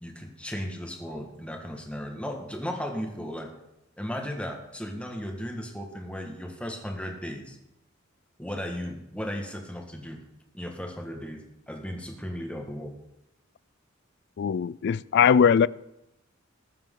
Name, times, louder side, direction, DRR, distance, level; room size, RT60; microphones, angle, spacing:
voice 1, 0.0-3.5 4.0-7.6 8.4-10.2 10.5-12.9, equal, 5° left, 1.6 m, -36 dB
voice 2, 14.4-15.7, left 7 dB, 60° left, 0.3 m, -20 dB
19.5 x 7.4 x 3.8 m
head